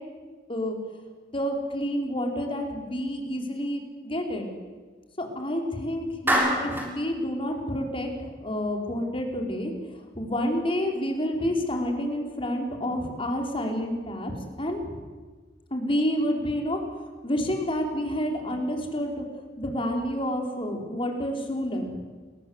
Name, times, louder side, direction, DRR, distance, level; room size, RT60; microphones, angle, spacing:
voice 1, 1.3-4.5 5.2-8.1 8.4-9.7 10.1-14.9 15.7-16.8 17.2-19.2 19.6-21.9, equal, 30° left, 3 dB, 4.9 m, -29 dB
Clapping, 6.3-7.0, equal, 10° right, 6.8 m, -24 dB
29.5 x 22.0 x 8.3 m, 1.4 s
head